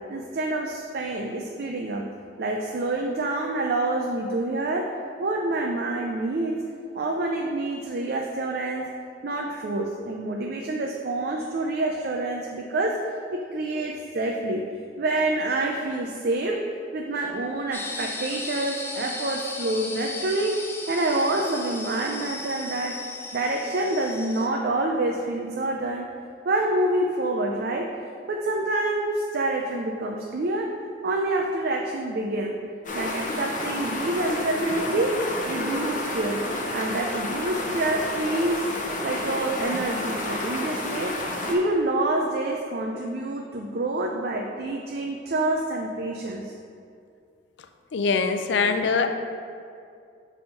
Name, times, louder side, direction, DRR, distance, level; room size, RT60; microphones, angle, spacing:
voice 1, 0.1-2.1 2.4-4.9 5.2-6.6 6.9-8.8 9.2-13.0 13.3-14.6 15.0-16.6 16.9-20.5 20.9-23.0 23.3-26.0 26.5-27.9 28.3-30.7 31.0-32.5 32.9-35.2 35.5-36.4 36.7-38.6 39.0-41.1 41.5-46.5, right 2 dB, 55° right, 1 dB, 0.4 m, -27 dB
sound 1, 17.7-24.5, left 2 dB, 15° left, 0.5 m, -36 dB
sound 2, 32.8-41.5, left 1 dB, 45° left, 0.8 m, -30 dB
voice 2, 47.9-49.1, left 5 dB, 70° left, 7 dB, 0.4 m, -23 dB
6.8 x 3.5 x 5.5 m, 2.4 s
head